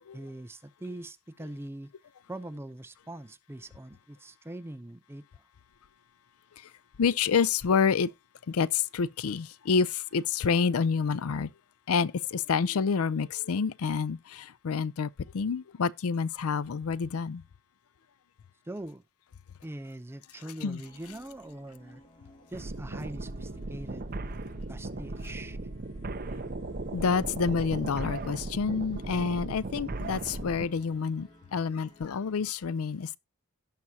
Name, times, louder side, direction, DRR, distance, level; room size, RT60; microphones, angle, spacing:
voice 1, 0.1-1.9 2.3-5.3 18.7-19.0 19.6-22.0 22.5-24.1 24.7-25.6, right 1 dB, 10° right, 0.4 m, -42 dB
voice 2, 7.0-8.1 8.5-11.5 11.9-17.4 20.6-20.8 26.9-33.2, left 5 dB, 70° left, 0.5 m, -28 dB
sound 1, 20.8-32.5, left 2 dB, 20° left, 2.0 m, -56 dB
sound 2, 22.5-30.7, right 2 dB, 40° right, 0.7 m, -37 dB
17.0 x 5.9 x 2.7 m
head